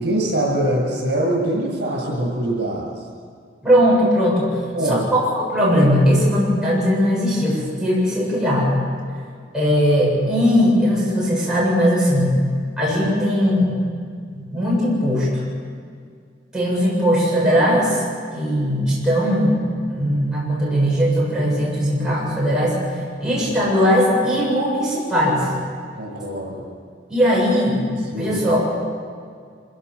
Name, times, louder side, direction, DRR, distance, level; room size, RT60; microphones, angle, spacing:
voice 1, 0.0-2.9 4.7-5.1 26.0-26.7 28.1-28.4, right 1 dB, 65° right, -1 dB, 7.4 m, -23 dB
voice 2, 3.6-4.6 4.8-8.8 9.5-12.4 12.8-13.7 14.3-15.3 16.5-18.0 18.3-22.8 23.2-25.5 27.1-27.8 28.1-28.6, equal, 5° right, -7 dB, 7.6 m, -19 dB
25.5 x 16.5 x 7.0 m, 2.1 s
head